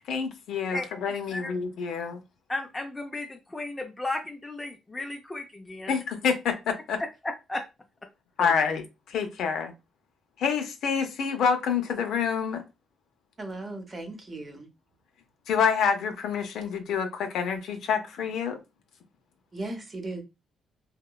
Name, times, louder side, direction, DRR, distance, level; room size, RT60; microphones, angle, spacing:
voice 1, 0.1-2.2 5.9-7.0 8.4-9.7 10.4-12.6 15.5-18.6, left 6 dB, 75° left, 0.5 m, -27 dB
voice 2, 2.5-5.9 7.0-7.6 8.4-8.6, left 2 dB, 20° left, 0.3 m, -34 dB
voice 3, 13.4-14.7 19.5-20.2, right 2 dB, 30° right, 0.7 m, -37 dB
2.8 x 2.1 x 2.2 m
cardioid pair, 90°, 0 cm